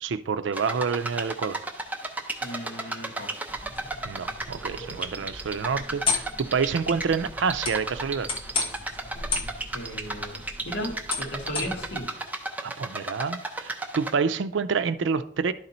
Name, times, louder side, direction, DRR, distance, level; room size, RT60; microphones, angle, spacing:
voice 1, 0.0-1.6 4.0-8.3 12.6-15.5, right 5 dB, 85° right, 0.4 m, -28 dB
sound 1, 0.5-14.1, right 2 dB, 10° right, 0.6 m, -34 dB
voice 2, 2.4-3.4 9.7-12.1, equal, 75° left, 1.8 m, -36 dB
sound 2, 3.5-12.0, left 4 dB, 30° left, 1.1 m, -34 dB
11.0 x 4.0 x 4.2 m
head